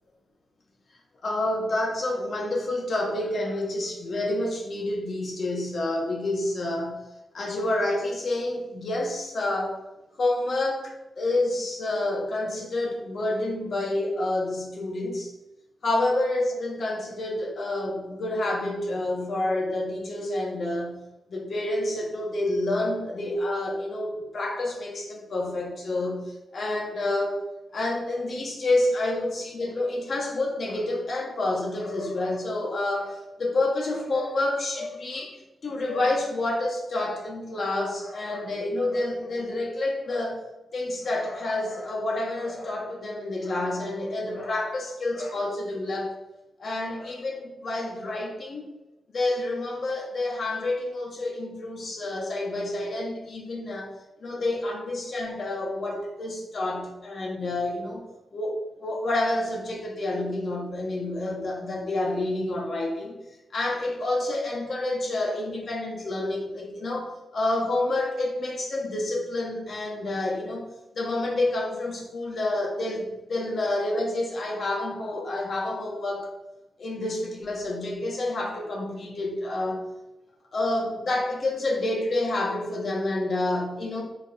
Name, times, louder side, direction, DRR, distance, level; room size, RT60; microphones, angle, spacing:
voice 1, 1.2-7.0 7.3-9.8 10.2-15.3 15.8-21.0 21.3-26.2 26.5-27.4 27.7-35.4 35.6-40.4 40.7-46.1 46.6-48.6 49.1-53.9 54.2-58.0 58.3-63.2 63.5-70.6 70.9-76.3 76.8-79.8 80.5-84.0, left 2 dB, 60° left, 0 dB, 1.1 m, -28 dB
4.6 x 4.1 x 2.4 m, 1.0 s
cardioid pair, 65°, 0 cm